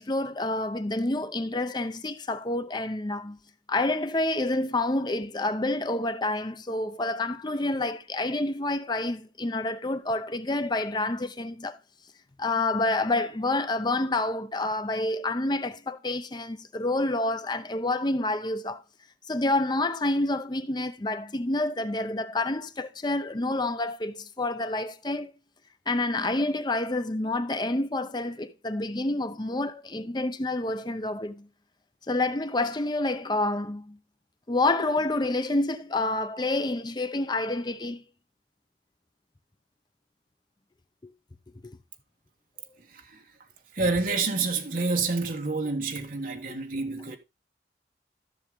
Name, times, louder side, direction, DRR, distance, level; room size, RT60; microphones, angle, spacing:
voice 1, 0.0-3.4 3.7-11.8 12.4-18.8 19.3-25.3 25.9-31.5 32.1-34.0 34.5-38.0 41.0-41.1 41.6-41.8, left 2 dB, 25° left, 0.6 m, -28 dB
voice 2, 42.8-43.3 43.7-47.2, right 3 dB, 50° right, 1.4 m, -28 dB
14.5 x 6.4 x 3.6 m
head